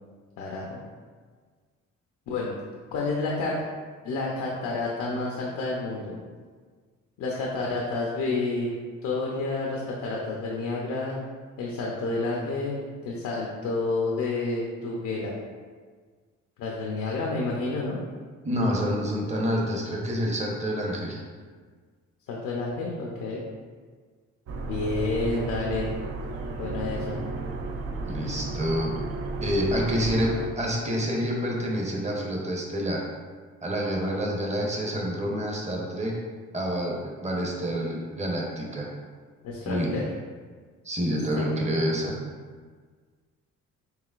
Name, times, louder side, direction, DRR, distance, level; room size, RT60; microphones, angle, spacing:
voice 1, 0.4-0.8 2.3-2.5 2.9-3.6 4.0-6.2 7.2-8.7 9.0-11.2 11.6-15.3 16.6-18.0 22.3-23.4 24.6-26.0 26.6-27.2 39.4-40.1 41.1-41.5, left 3 dB, 80° left, -3 dB, 0.7 m, -29 dB
voice 2, 18.4-21.2 28.0-28.9 29.4-33.0 33.6-36.1 36.5-38.9 39.6-40.0 40.8-42.1, equal, 25° right, -2 dB, 0.8 m, -28 dB
sound 1, 24.5-30.5, right 3 dB, 50° right, 0.5 m, -33 dB
4.8 x 3.1 x 2.4 m, 1.5 s
cardioid pair, 90°, 30 cm